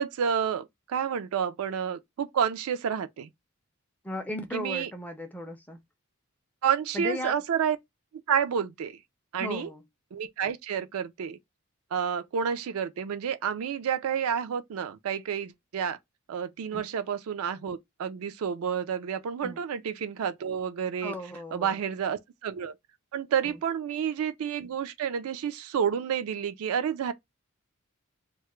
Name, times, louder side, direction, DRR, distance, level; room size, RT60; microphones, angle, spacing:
voice 1, 0.0-3.3 4.5-4.9 6.6-7.8 8.3-9.0 9.3-9.7 10.1-11.4 11.9-16.0 16.3-21.1 21.5-22.7 23.1-27.1, right 7 dB, 75° right, 0.3 m, -30 dB
voice 2, 4.0-5.8 6.9-7.4 9.4-9.8 16.7-16.8 19.4-19.6 21.0-21.8 23.4-23.6, left 1 dB, 5° left, 0.4 m, -36 dB
2.2 x 2.1 x 3.0 m
head